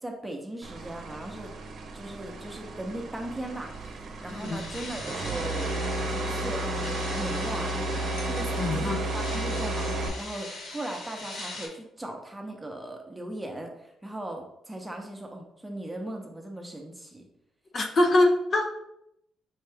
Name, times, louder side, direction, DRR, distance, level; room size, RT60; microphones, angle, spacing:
voice 1, 0.0-1.5 1.9-3.7 4.2-7.7 8.2-17.3, right 1 dB, 10° right, 2 dB, 0.8 m, -38 dB
sound 1, 0.6-10.1, right 2 dB, 60° right, 0.7 m, -32 dB
sound 2, 3.6-11.7, left 2 dB, 75° left, 1.1 m, -41 dB
voice 2, 4.3-4.6 8.6-9.0 17.7-18.8, left 2 dB, 45° left, 2 dB, 0.6 m, -24 dB
5.5 x 2.4 x 3.4 m, 0.80 s
cardioid pair, 90°, 0 cm